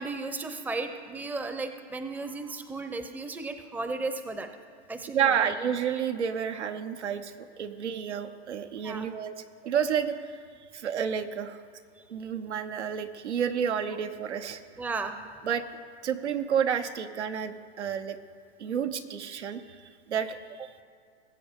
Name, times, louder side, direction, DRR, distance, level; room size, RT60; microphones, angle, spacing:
voice 1, 0.0-4.5 4.9-5.4 8.8-9.1 12.0-12.1 14.8-15.2, right 3 dB, 5° right, 8 dB, 0.6 m, -35 dB
voice 2, 5.1-9.3 9.6-10.4 10.7-11.6 12.1-14.6 15.4-15.6 16.0-18.2 18.6-20.8, right 8 dB, 85° right, 7 dB, 1.0 m, -30 dB
20.0 x 7.9 x 3.7 m, 2.2 s
hypercardioid pair, 110°, 34 cm